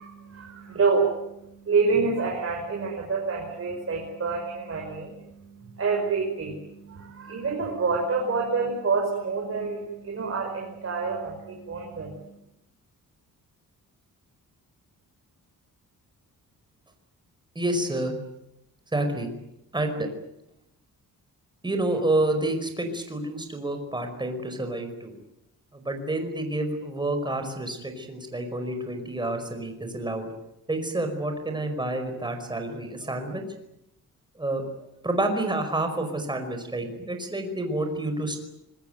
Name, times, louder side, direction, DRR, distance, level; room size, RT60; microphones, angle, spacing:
voice 1, 0.0-12.3, right 4 dB, 40° right, 0 dB, 5.9 m, -28 dB
voice 2, 17.5-18.1 18.9-19.3 19.7-20.1 21.6-25.1 25.7-30.3 30.7-33.4 34.3-34.6 35.0-38.4, right 1 dB, 15° right, 5 dB, 5.1 m, -29 dB
25.5 x 20.5 x 9.3 m, 0.84 s
wide cardioid pair, 150°, 34 cm